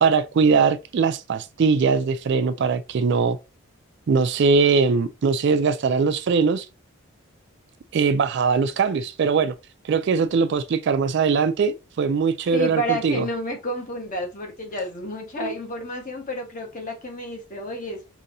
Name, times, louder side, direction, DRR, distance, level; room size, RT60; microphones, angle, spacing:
voice 1, 0.0-3.4 4.1-6.7 7.9-9.5 9.8-13.2 15.4-15.5, right 5 dB, 50° right, 0.3 m, -21 dB
voice 2, 12.5-18.1, equal, 35° left, 1.1 m, -30 dB
5.3 x 2.8 x 2.6 m
head